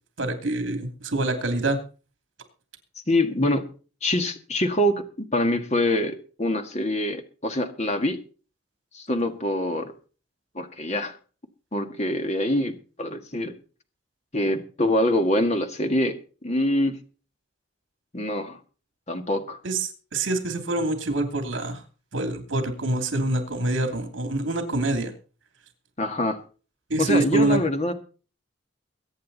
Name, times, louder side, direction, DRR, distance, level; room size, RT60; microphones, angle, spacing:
voice 1, 0.2-1.8 19.6-21.8 22.1-25.1 26.9-27.6, right 2 dB, 70° right, 6 dB, 2.8 m, -25 dB
voice 2, 3.1-3.7 4.0-8.2 8.9-9.9 10.6-11.2 11.7-13.6 14.3-17.0 18.1-18.6 19.1-19.6 26.0-26.4 27.0-27.9, left 1 dB, 35° left, 7 dB, 1.7 m, -25 dB
22.5 x 9.4 x 4.1 m, 0.37 s
head